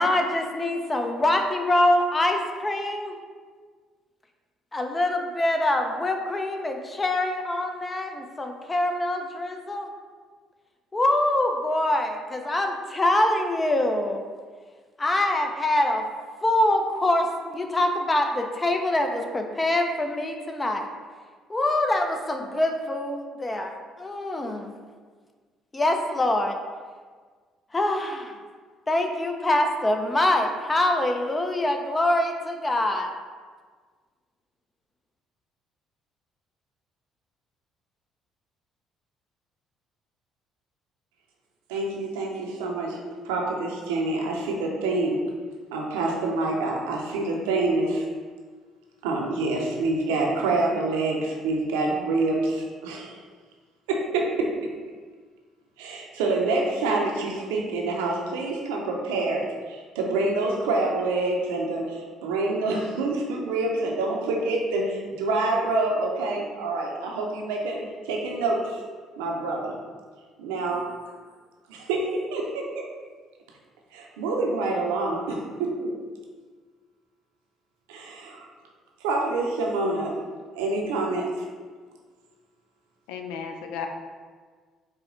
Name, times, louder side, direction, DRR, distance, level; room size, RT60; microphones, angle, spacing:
voice 1, 0.0-3.1 4.7-9.9 10.9-14.2 15.0-16.0 16.4-20.8 21.5-23.7 24.0-24.7 25.7-26.6 27.7-28.3 28.9-33.2, left 1 dB, 25° left, 4 dB, 0.6 m, -24 dB
voice 2, 41.7-43.0 43.2-45.2 45.7-48.1 49.0-53.2 53.9-54.5 55.8-67.8 68.0-68.8 69.2-69.7 70.4-70.8 71.9-72.0 72.3-72.9 73.9-75.9 77.9-78.5 79.0-80.1 80.5-81.3, right 2 dB, 85° right, -1 dB, 0.6 m, -26 dB
voice 3, 83.1-83.9, left 6 dB, 85° left, 5 dB, 0.4 m, -34 dB
4.9 x 2.2 x 3.8 m, 1.5 s
hypercardioid pair, 60°, 0 cm